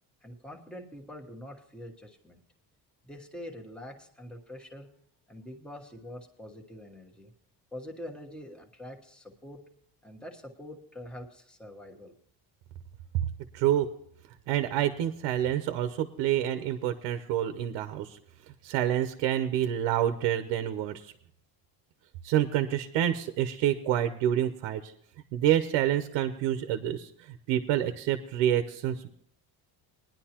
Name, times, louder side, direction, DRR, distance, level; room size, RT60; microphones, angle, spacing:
voice 1, 0.2-2.4 3.0-4.9 5.3-7.3 7.7-9.6 10.0-12.1, left 1 dB, ahead, 1 dB, 1.2 m, -45 dB
voice 2, 13.5-13.9 14.5-18.2 18.6-21.1 22.2-24.9 25.3-29.1, right 11 dB, 85° right, 9 dB, 0.9 m, -28 dB
19.5 x 10.5 x 2.9 m, 0.65 s
cardioid pair, 115°, 42 cm